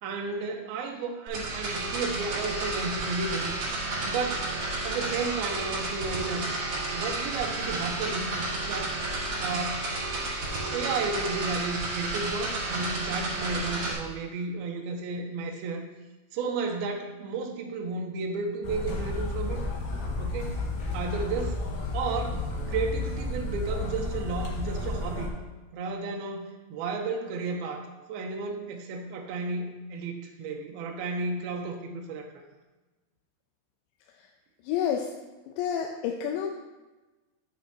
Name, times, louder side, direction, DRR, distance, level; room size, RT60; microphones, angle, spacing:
voice 1, 0.0-3.6 4.1-4.5 4.8-6.5 6.9-9.0 9.4-9.9 10.7-15.8 16.3-19.6 20.2-20.6 20.9-21.7 21.9-25.3 25.7-32.4, right 4 dB, 75° right, 2 dB, 2.4 m, -33 dB
sound 1, 1.3-13.9, right 2 dB, 45° right, 2.3 m, -32 dB
sound 2, 18.6-25.3, left 2 dB, 70° left, 2.9 m, -32 dB
voice 2, 34.6-35.1 35.5-36.5, left 8 dB, 90° left, 1 dB, 2.9 m, -29 dB
9.7 x 8.3 x 2.8 m, 1.1 s
omnidirectional pair, 4.9 m